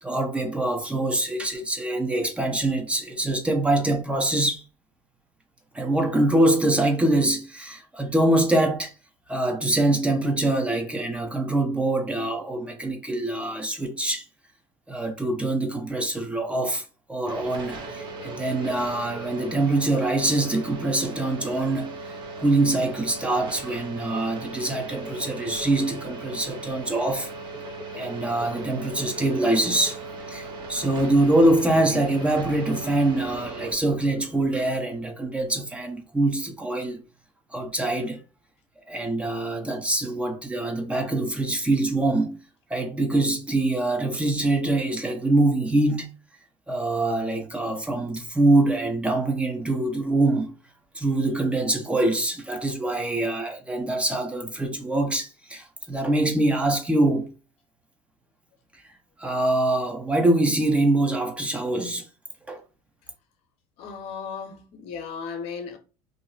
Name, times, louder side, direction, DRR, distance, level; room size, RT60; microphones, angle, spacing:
voice 1, 0.0-4.6 5.7-8.9 9.3-14.2 14.9-21.9 22.4-27.3 28.0-37.0 37.5-38.2 38.9-42.4 42.7-46.1 46.7-50.5 50.9-57.3 59.2-62.1 62.5-62.6, right 2 dB, 10° right, 0.7 m, -24 dB
sound 1, 17.3-33.7, right 2 dB, 40° right, 0.8 m, -38 dB
voice 2, 63.8-65.8, left 6 dB, 60° left, 0.9 m, -35 dB
2.6 x 2.0 x 3.9 m
supercardioid pair, 100°, 12 cm